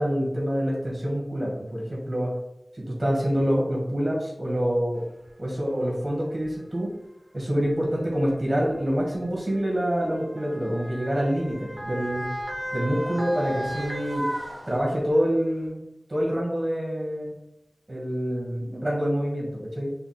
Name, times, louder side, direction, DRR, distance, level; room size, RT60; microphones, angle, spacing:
voice 1, 0.0-2.3 2.7-5.0 5.4-6.9 7.3-12.2 12.7-14.2 14.7-15.8 16.1-17.3 17.9-19.9, equal, 40° right, -4 dB, 1.7 m, -26 dB
Motor vehicle (road) / Siren, 5.3-5.4 6.3-6.5 7.6-15.2 15.6-15.7, equal, 20° right, 1.2 m, -35 dB
5.6 x 4.2 x 2.2 m, 0.86 s
wide cardioid pair, 45°, 0 cm